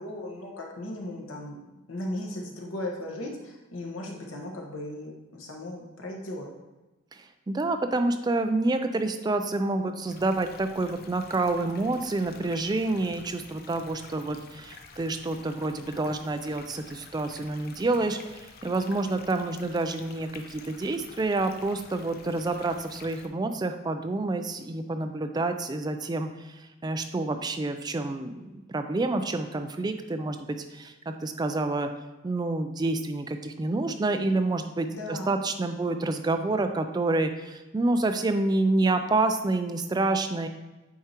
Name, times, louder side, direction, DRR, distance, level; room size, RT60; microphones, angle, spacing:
voice 1, 0.0-1.6 1.9-6.5 34.9-35.4, left 1 dB, 90° left, 0 dB, 1.2 m, -37 dB
voice 2, 7.1-31.9 32.2-40.5, right 2 dB, 20° right, 7 dB, 0.3 m, -28 dB
sound 1, 10.1-23.3, left 4 dB, 50° left, 0.5 m, -49 dB
8.3 x 4.5 x 2.9 m, 1.1 s
head